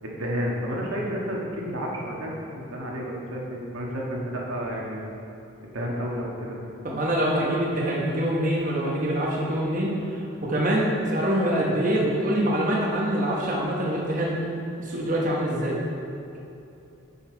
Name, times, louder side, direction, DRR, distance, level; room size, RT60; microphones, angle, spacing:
voice 1, 0.0-5.0 5.6-6.6, equal, 85° right, -3 dB, 1.5 m, -31 dB
voice 2, 6.8-14.4 14.8-15.8, right 1 dB, 40° right, -4 dB, 1.0 m, -25 dB
9.3 x 5.7 x 4.5 m, 2.8 s
head